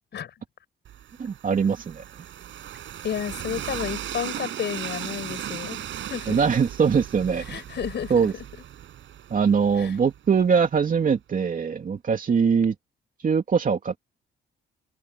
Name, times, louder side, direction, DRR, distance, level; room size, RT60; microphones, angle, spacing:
Train, 0.8-10.7, right 11 dB, 70° right, 6.8 m, -37 dB
voice 1, 1.2-2.0 6.3-7.4 8.1-8.3 9.3-12.7 13.2-14.0, right 6 dB, 45° right, 2.8 m, -22 dB
voice 2, 3.0-5.8 6.1-6.5 7.4-8.4 9.8-10.0, left 8 dB, 60° left, 5.7 m, -32 dB
cardioid pair, 90°, 20 cm